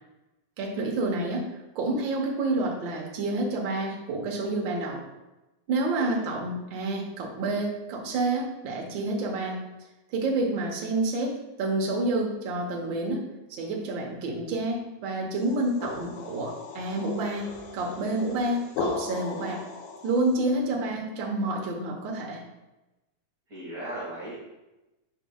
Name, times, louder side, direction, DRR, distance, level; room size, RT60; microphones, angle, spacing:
voice 1, 0.6-1.4 1.7-5.0 5.7-9.6 10.1-13.2 13.5-19.6 20.0-22.4, right 2 dB, 65° right, -1 dB, 1.1 m, -29 dB
voice 2, 6.0-6.3 23.5-24.5, right 1 dB, 35° right, -10 dB, 1.8 m, -37 dB
sound 1, 15.4-20.4, left 4 dB, 75° left, 2.0 m, -36 dB
8.7 x 5.2 x 2.3 m, 1.0 s
omnidirectional pair, 3.6 m